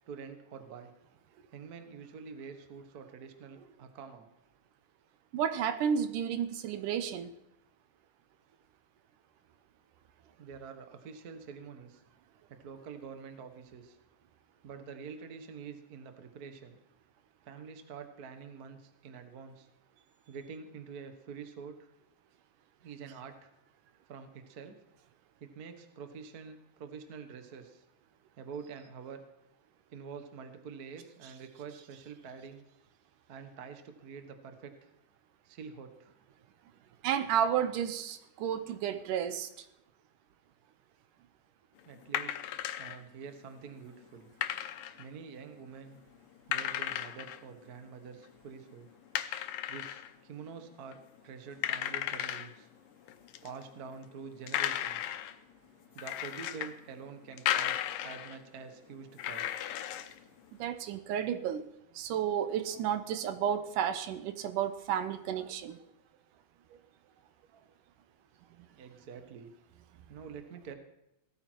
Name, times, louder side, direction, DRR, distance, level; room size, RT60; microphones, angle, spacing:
voice 1, 0.1-0.9 1.5-4.3 10.4-12.0 12.5-14.0 14.6-16.8 17.4-19.7 20.3-21.9 22.8-23.5 24.1-24.8 25.4-27.8 28.4-29.2 29.9-32.6 33.3-34.9 35.4-36.1 41.8-42.5 42.8-44.3 45.0-46.0 46.5-48.9 49.7-51.0 51.2-52.7 53.4-55.2 55.9-59.5 68.8-69.5 70.1-70.7, right 6 dB, 55° right, 7 dB, 1.0 m, -47 dB
voice 2, 5.3-7.3 37.0-39.5 60.6-61.6 62.0-65.8, right 8 dB, 75° right, 10 dB, 2.3 m, -32 dB
sound 1, 42.0-43.0 44.4-45.0 45.6-45.7 46.5-47.5 47.8-47.9 48.2-48.7 49.2-50.1 50.6-50.9 51.2-51.3 51.6-52.5 53.1-54.1 54.4-55.4 56.0-56.8 57.1-58.4 59.0-60.2, left 12 dB, 85° left, 2.4 m, -35 dB
17.5 x 13.5 x 4.5 m, 0.86 s
omnidirectional pair, 3.8 m